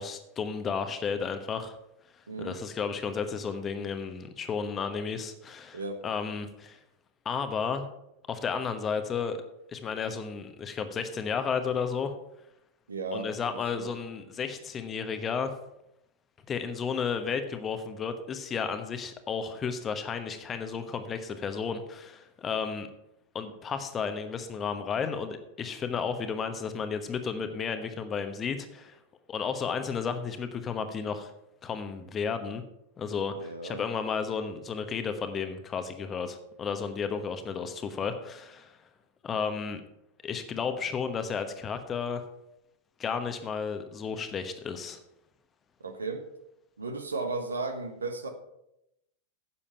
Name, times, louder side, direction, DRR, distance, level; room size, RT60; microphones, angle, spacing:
voice 1, 0.0-1.8 2.4-6.8 7.2-7.9 8.3-9.4 9.7-12.1 13.1-15.5 16.5-22.9 23.3-29.0 29.3-31.3 31.6-32.6 33.0-38.8 39.2-39.8 40.2-42.2 43.0-45.0, left 6 dB, 25° left, 8 dB, 1.1 m, -33 dB
voice 2, 2.3-2.6 5.7-6.0 12.9-13.9 33.3-33.8 45.8-46.2 46.8-48.3, right 3 dB, 75° right, 6 dB, 1.3 m, -35 dB
10.0 x 7.1 x 5.7 m, 0.83 s
figure-of-eight pair, 90°, 0 cm